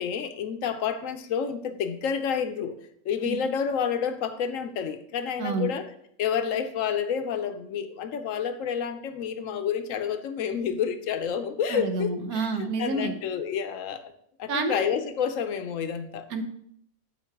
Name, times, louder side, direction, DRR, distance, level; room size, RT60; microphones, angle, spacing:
voice 1, 0.0-2.8 3.1-5.9 6.2-14.1 14.4-16.2, left 7 dB, 70° left, 10 dB, 0.9 m, -29 dB
voice 2, 5.4-5.7 11.7-13.1 14.5-14.9 16.3-16.4, right 3 dB, 90° right, 8 dB, 1.3 m, -29 dB
8.3 x 4.0 x 4.5 m, 0.70 s
omnidirectional pair, 1.5 m